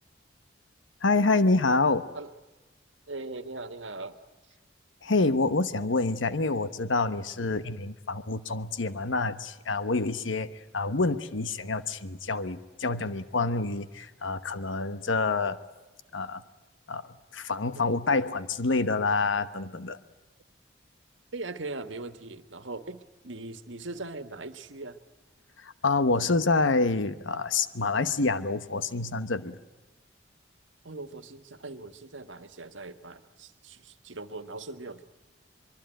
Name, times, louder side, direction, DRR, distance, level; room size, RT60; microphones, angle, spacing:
voice 1, 1.0-2.1 5.0-10.5 10.7-15.6 16.1-16.4 16.9-17.0 17.3-20.0 25.6-29.6, left 3 dB, 85° left, 12 dB, 1.1 m, -27 dB
voice 2, 3.1-4.2 7.4-7.6 17.7-18.0 21.3-25.0 30.8-35.0, right 3 dB, 85° right, 10 dB, 1.6 m, -40 dB
24.0 x 23.0 x 9.1 m, 1.2 s
head